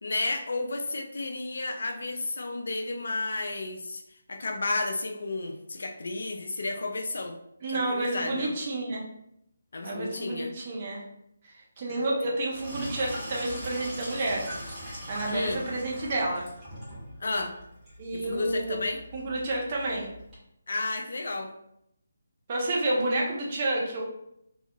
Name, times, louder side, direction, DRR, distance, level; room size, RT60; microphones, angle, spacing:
voice 1, 0.0-4.0 4.3-7.4 7.7-8.5 9.7-10.5 11.9-12.1 15.3-15.6 17.2-17.6 18.1-19.0 20.7-21.5, left 2 dB, 60° left, 4 dB, 0.3 m, -32 dB
voice 2, 7.6-9.0 9.8-11.0 11.8-14.4 15.1-16.4 18.0-18.8 19.1-20.1 22.5-24.0, right 2 dB, 35° right, -3 dB, 0.6 m, -30 dB
Sink (filling or washing), 12.5-20.3, equal, 15° right, 1.1 m, -41 dB
2.7 x 2.3 x 2.2 m, 0.78 s
figure-of-eight pair, 150°, 0 cm